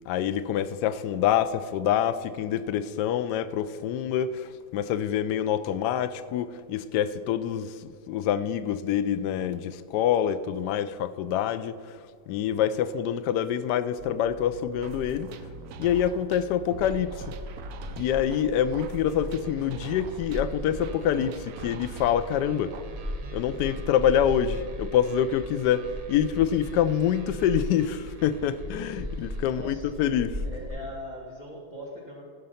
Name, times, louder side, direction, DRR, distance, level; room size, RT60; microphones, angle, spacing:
voice 1, 0.1-15.3 15.8-17.3 18.0-22.7 23.3-30.4, left 9 dB, 75° left, 1.0 m, -26 dB
sound 1, 14.0-30.7, right 2 dB, 90° right, 2.3 m, -47 dB
sound 2, 14.8-22.8, right 5 dB, 75° right, 0.8 m, -42 dB
sound 3, 16.8-30.7, equal, 25° right, 1.1 m, -39 dB
voice 2, 29.4-29.9 30.4-32.2, left 1 dB, 20° left, 2.1 m, -40 dB
15.5 x 5.3 x 5.6 m
omnidirectional pair, 2.3 m